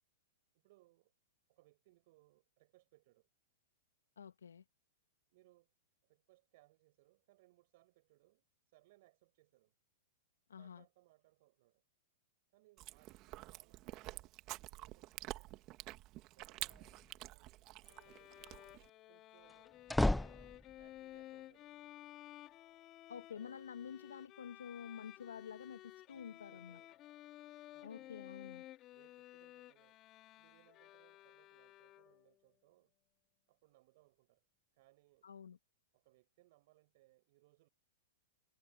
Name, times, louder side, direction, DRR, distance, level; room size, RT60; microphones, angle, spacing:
voice 1, 0.6-1.1 1.5-3.3 5.3-5.7 6.0-9.7 10.5-11.8 12.5-15.6 16.3-19.8 20.3-21.7 23.3-23.6 26.1-27.0 27.7-28.3 28.9-30.0 30.4-32.9 33.5-34.4 34.7-35.3 35.9-37.7, right 20 dB, 55° right, 7.0 m, -70 dB
voice 2, 4.2-4.6 10.5-10.8 23.1-26.8 27.8-28.6 35.2-35.6, left 7 dB, 85° left, 1.9 m, -49 dB
Chewing mastication, 12.8-18.9, right 18 dB, 40° right, 1.8 m, -49 dB
sound 1, 16.7-17.2 19.5-21.0, left 1 dB, 5° left, 0.5 m, -35 dB
Bowed string instrument, 17.8-32.4, left 15 dB, 35° left, 3.4 m, -55 dB
hypercardioid pair, 120°, 0 cm